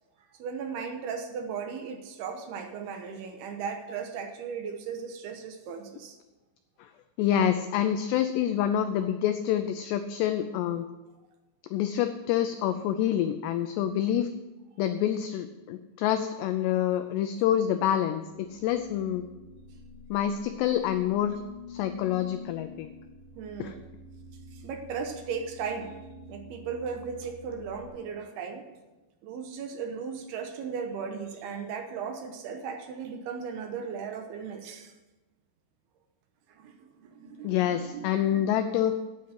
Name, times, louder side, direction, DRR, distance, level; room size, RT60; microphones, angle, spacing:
voice 1, 0.4-6.2 23.4-23.8 24.5-26.0 26.3-28.6 29.2-34.9 36.5-38.5, right 6 dB, 75° right, 5 dB, 2.6 m, -37 dB
voice 2, 7.2-10.9 11.7-14.3 14.8-19.2 20.1-21.4 21.7-22.9 23.6-23.8 37.4-39.0, left 10 dB, 85° left, 8 dB, 2.4 m, -27 dB
sound 1, 17.8-27.9, left 3 dB, 90° right, 5.5 m, -47 dB
9.7 x 8.6 x 7.6 m, 1.1 s
omnidirectional pair, 5.5 m